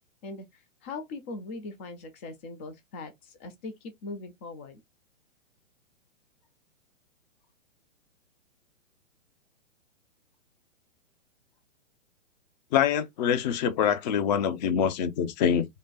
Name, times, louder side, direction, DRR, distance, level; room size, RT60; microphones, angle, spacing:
voice 1, 0.2-4.8, left 3 dB, 10° left, 0.3 m, -40 dB
voice 2, 12.7-15.7, left 8 dB, 35° left, 0.7 m, -25 dB
5.2 x 2.2 x 3.9 m
figure-of-eight pair, 120°, 38 cm